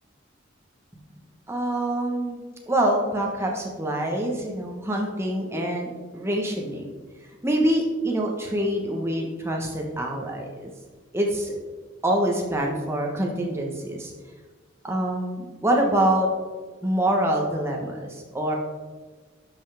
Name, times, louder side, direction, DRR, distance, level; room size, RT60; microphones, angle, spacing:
voice 1, 1.5-2.4 2.7-6.9 7.4-10.7 11.1-11.5 12.0-14.1 14.8-16.3 16.8-18.5, right 1 dB, 15° right, 0 dB, 1.2 m, -25 dB
11.5 x 5.6 x 3.4 m, 1.4 s
head